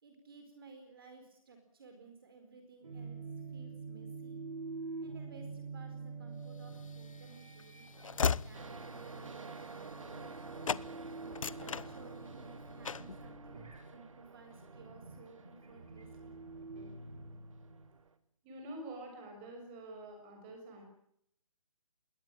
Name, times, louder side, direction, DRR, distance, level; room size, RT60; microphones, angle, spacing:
voice 1, 0.0-3.2 3.5-4.4 5.0-10.9 11.4-16.4, right 4 dB, 40° right, 6 dB, 4.6 m, -57 dB
sound 1, 2.8-18.0, right 3 dB, 85° right, 8.0 m, -47 dB
Train / Slam, 6.8-10.4 10.6-10.9 11.2-12.4 12.8-13.2, left 6 dB, 70° left, 0.9 m, -37 dB
sound 2, 8.5-18.1, right 5 dB, 70° right, 2.3 m, -51 dB
voice 2, 18.4-20.8, right 1 dB, 15° right, 3 dB, 6.0 m, -47 dB
21.0 x 19.5 x 8.8 m, 0.71 s
hypercardioid pair, 175°, 18 cm